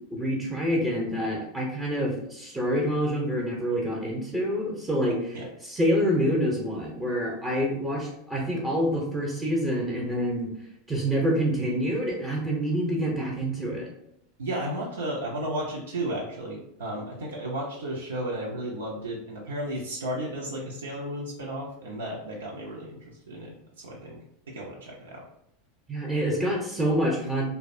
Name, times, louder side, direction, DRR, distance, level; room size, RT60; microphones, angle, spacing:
voice 1, 0.1-5.4 5.6-10.5 10.9-13.9 25.9-27.5, equal, 20° right, -2 dB, 0.6 m, -27 dB
voice 2, 14.4-24.2 24.5-25.2, right 1 dB, 85° right, -3 dB, 0.5 m, -34 dB
2.6 x 2.1 x 2.5 m, 0.77 s
hypercardioid pair, 95°, 0 cm